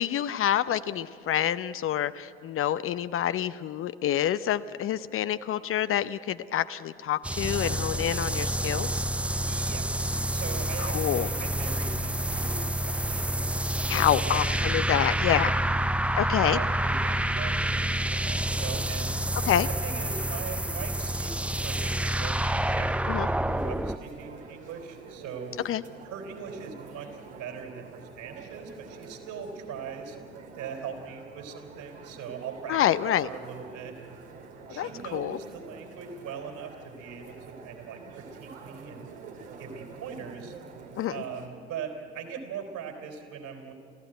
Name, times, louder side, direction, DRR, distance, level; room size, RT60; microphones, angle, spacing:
voice 1, 0.0-9.0 10.8-11.3 13.9-15.6 16.1-16.6 19.5-19.7 23.1-23.3 25.6-25.8 32.7-33.3 34.8-35.4 41.0-41.2, left 11 dB, 40° left, 13 dB, 0.7 m, -27 dB
sound 1, 7.2-24.0, right 1 dB, 5° right, 0.5 m, -28 dB
voice 2, 9.4-15.0 15.3-15.8 16.4-19.1 19.7-25.6 26.0-30.2 30.6-32.8 33.2-34.2 34.7-39.1 39.6-40.5 41.1-43.7, right 6 dB, 55° right, 5 dB, 4.3 m, -41 dB
sound 2, 23.5-41.5, right 4 dB, 75° right, 2.7 m, -47 dB
28.0 x 15.0 x 9.2 m, 2.5 s
figure-of-eight pair, 65°, 34 cm